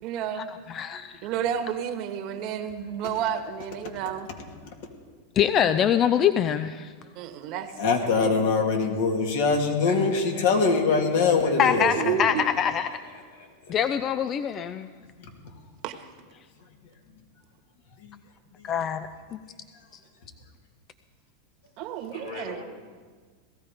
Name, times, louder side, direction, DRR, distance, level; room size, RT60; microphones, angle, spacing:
voice 1, 0.0-0.5 1.2-4.3 7.1-8.4 11.8-12.5 15.8-16.1 21.8-22.6, right 9 dB, 50° right, 7 dB, 1.6 m, -31 dB
voice 2, 0.7-1.2 5.4-6.9 11.6-11.9 12.2-12.9 13.7-14.9 18.6-19.4, left 9 dB, 35° left, 11 dB, 0.6 m, -24 dB
voice 3, 7.8-12.2 15.2-15.3, left 4 dB, 70° left, 2 dB, 2.7 m, -23 dB
voice 4, 9.8-10.7 11.4-11.5 11.9-12.0 12.4-13.7 22.1-22.6, left 4 dB, 90° left, 0 dB, 4.9 m, -43 dB
18.0 x 14.0 x 5.2 m, 1.5 s
hypercardioid pair, 115°, 0 cm